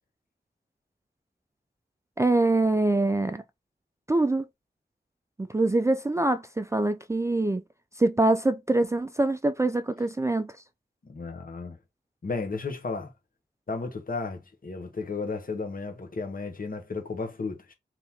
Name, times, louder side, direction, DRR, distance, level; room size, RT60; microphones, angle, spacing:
voice 1, 2.2-3.4 4.1-4.5 5.4-7.6 8.0-10.5, right 2 dB, 15° right, 0.3 m, -24 dB
voice 2, 11.1-11.8 12.2-13.1 13.7-17.7, left 4 dB, 55° left, 1.0 m, -34 dB
2.8 x 2.8 x 3.5 m
cardioid pair, 55°, 18 cm